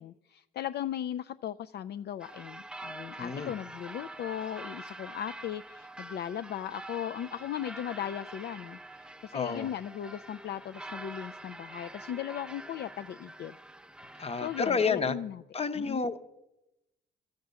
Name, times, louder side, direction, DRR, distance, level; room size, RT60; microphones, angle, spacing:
voice 1, 0.0-13.6 14.1-15.4 15.7-16.0, left 10 dB, 55° left, 11 dB, 0.4 m, -37 dB
sound 1, 2.2-14.9, right 1 dB, 5° right, 0.4 m, -46 dB
voice 2, 3.2-3.5 9.3-9.7 14.2-15.2 15.5-16.3, left 5 dB, 30° left, 11 dB, 0.8 m, -30 dB
12.5 x 6.6 x 8.1 m, 0.92 s
cardioid pair, 90°, 20 cm